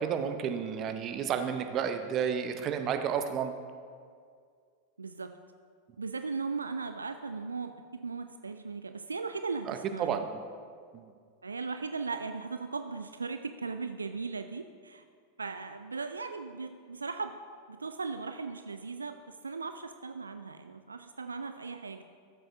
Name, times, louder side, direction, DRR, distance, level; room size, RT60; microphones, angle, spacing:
voice 1, 0.0-3.5 9.7-10.2 10.9-11.0, right 7 dB, 35° right, 7 dB, 0.7 m, -31 dB
voice 2, 5.0-5.3 6.0-10.2 11.4-15.0 15.4-17.4 17.7-19.2 19.4-22.0, right 4 dB, 75° right, 8 dB, 0.3 m, -37 dB
13.5 x 7.8 x 2.6 m, 2.1 s
figure-of-eight pair, 90°, 0 cm